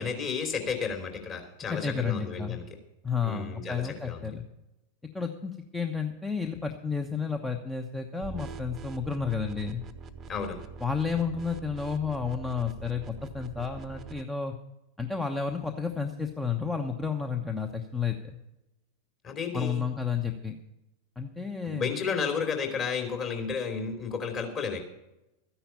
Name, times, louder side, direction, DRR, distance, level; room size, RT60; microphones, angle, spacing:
voice 1, 0.0-2.6 3.2-4.3 10.3-10.6 19.2-19.8 21.6-24.8, left 5 dB, 30° left, 4 dB, 3.2 m, -32 dB
voice 2, 1.7-2.6 3.0-4.4 5.1-9.8 10.8-14.6 15.0-18.4 19.5-20.6 21.2-21.9, left 5 dB, 10° left, 5 dB, 1.0 m, -31 dB
sound 1, 8.2-14.2, right 5 dB, 25° right, 0.9 m, -44 dB
13.5 x 10.0 x 5.6 m, 0.92 s
figure-of-eight pair, 90°, 0 cm